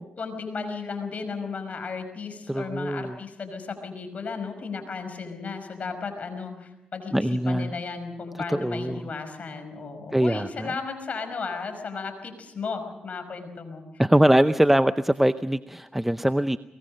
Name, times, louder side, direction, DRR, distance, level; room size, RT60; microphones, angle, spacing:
voice 1, 0.2-13.8, left 4 dB, 50° left, 6 dB, 5.3 m, -35 dB
voice 2, 2.5-3.2 7.1-7.7 8.5-9.0 10.1-10.7 14.0-16.6, right 1 dB, 5° right, 12 dB, 0.7 m, -22 dB
23.0 x 20.0 x 6.5 m, 0.91 s
supercardioid pair, 60°, 3 cm